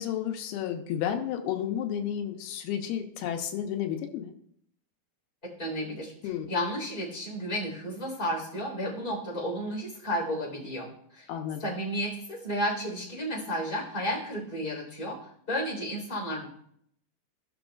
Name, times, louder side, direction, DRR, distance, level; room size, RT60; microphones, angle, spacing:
voice 1, 0.0-4.3 6.2-6.5 11.3-11.7, left 9 dB, 90° left, 4 dB, 2.7 m, -32 dB
voice 2, 5.4-6.1 6.5-10.9 11.1-11.3 11.6-15.2 15.5-16.4, equal, 15° left, -5 dB, 3.7 m, -32 dB
16.0 x 6.2 x 2.4 m, 0.69 s
omnidirectional pair, 4.4 m